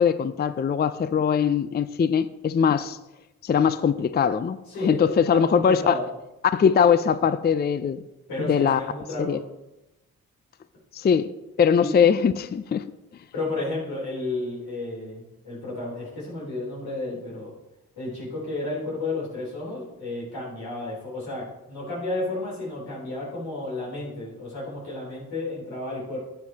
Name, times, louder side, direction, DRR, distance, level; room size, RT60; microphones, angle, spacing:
voice 1, 0.0-3.0 3.4-6.0 6.5-8.0 8.4-8.8 9.2-9.4 10.9-11.3 11.6-12.8, left 7 dB, 25° left, 0.4 m, -21 dB
voice 2, 4.7-6.1 8.3-9.5 11.8-11.9 13.3-17.5 18.0-26.2, left 2 dB, 85° left, 3.6 m, -32 dB
12.5 x 7.5 x 2.9 m
supercardioid pair, 40°, 37 cm